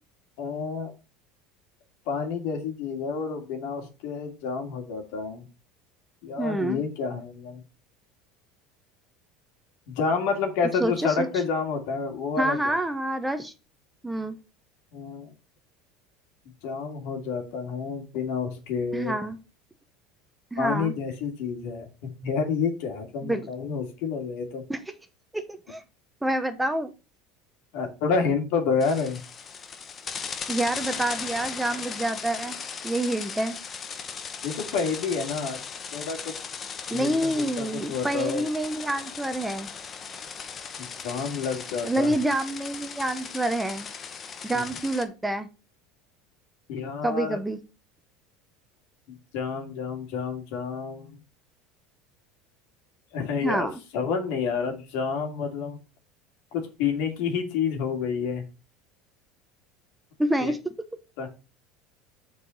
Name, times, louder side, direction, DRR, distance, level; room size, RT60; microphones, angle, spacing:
voice 1, 0.4-0.9 2.1-5.4 6.2-7.6 9.9-12.7 14.9-15.3 16.6-19.1 20.6-21.9 22.2-24.6 27.7-29.2 34.4-35.6 35.9-36.3 36.9-38.4 40.8-42.2 44.5-44.6 46.7-47.4 49.1-51.2 53.1-55.8 56.5-58.4 60.4-60.5 61.2-61.3, left 5 dB, 70° left, 2.5 m, -29 dB
voice 2, 6.4-6.8 10.8-11.3 12.4-13.5 14.0-14.3 18.9-19.4 20.5-20.9 23.2-23.5 24.7-24.8 25.3-25.8 26.2-26.9 30.5-32.6 32.8-33.6 36.9-39.7 41.8-43.9 44.4-45.5 47.0-47.6 53.4-53.7 60.2-60.7, right 1 dB, 5° right, 0.8 m, -27 dB
sound 1, 28.8-45.0, left 6 dB, 30° left, 1.0 m, -37 dB
6.8 x 4.8 x 5.4 m
supercardioid pair, 130°, 0 cm